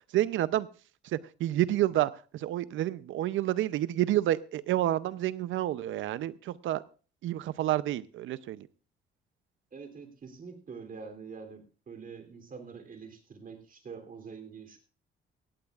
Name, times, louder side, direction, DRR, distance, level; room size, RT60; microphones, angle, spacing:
voice 1, 0.1-0.7 1.1-6.8 7.2-8.7, right 13 dB, 80° right, 16 dB, 0.6 m, -29 dB
voice 2, 9.7-14.8, right 5 dB, 45° right, 5 dB, 3.1 m, -45 dB
17.0 x 16.0 x 2.4 m, 0.37 s
cardioid pair, 90°, 20 cm